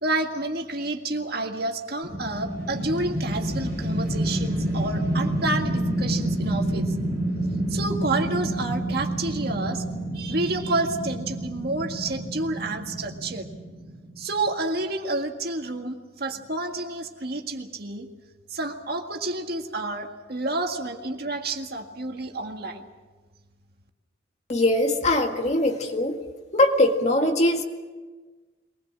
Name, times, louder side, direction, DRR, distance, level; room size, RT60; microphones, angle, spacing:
voice 1, 0.0-6.9 7.7-9.8 10.1-13.5 14.2-18.1 18.5-22.9, right 2 dB, 55° right, 4 dB, 1.9 m, -29 dB
sound 1, 2.0-14.2, right 1 dB, 20° right, 6.7 m, -28 dB
voice 2, 24.5-26.2 26.5-27.6, left 1 dB, 35° left, 4 dB, 1.9 m, -21 dB
23.0 x 19.5 x 7.5 m, 1.3 s
head